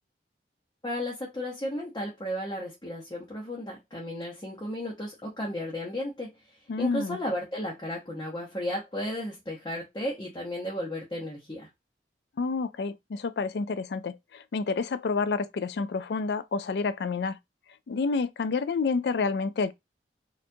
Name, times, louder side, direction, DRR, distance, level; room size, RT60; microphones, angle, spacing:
voice 1, 0.8-11.7, left 1 dB, 25° left, 0.9 m, -34 dB
voice 2, 6.7-7.2 12.4-17.4 17.9-19.7, left 4 dB, 70° left, 0.4 m, -29 dB
4.3 x 2.5 x 2.7 m
head